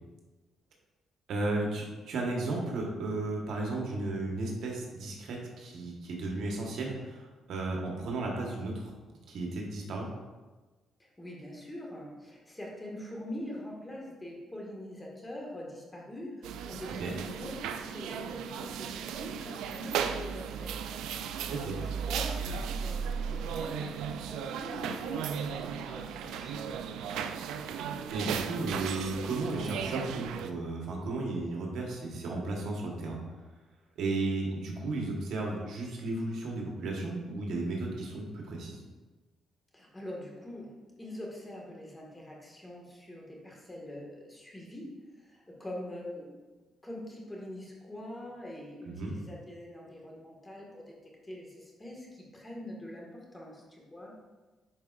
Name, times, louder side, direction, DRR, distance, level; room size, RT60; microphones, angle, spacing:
voice 1, 1.3-8.9 9.3-10.1 17.0-17.1 21.5-21.8 28.1-33.2 34.0-38.8 48.8-49.1, right 2 dB, 75° right, -1 dB, 1.4 m, -34 dB
voice 2, 11.2-26.9 39.7-40.7 41.0-46.3 46.8-51.0 51.2-54.1, left 1 dB, 15° left, -2 dB, 1.8 m, -44 dB
sound 1, 16.4-30.5, right 7 dB, 90° right, 0.3 m, -36 dB
9.6 x 4.6 x 2.5 m, 1.2 s
cardioid pair, 90°, 0 cm